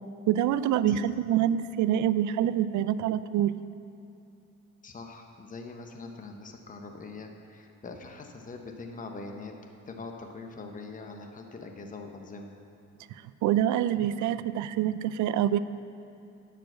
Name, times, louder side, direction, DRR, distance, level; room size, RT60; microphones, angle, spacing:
voice 1, 0.3-3.5 13.4-15.6, right 11 dB, 75° right, 14 dB, 0.5 m, -26 dB
voice 2, 4.8-9.5 9.9-12.5, left 3 dB, 25° left, 4 dB, 0.9 m, -43 dB
10.0 x 5.1 x 7.9 m, 2.6 s
cardioid pair, 90°, 30 cm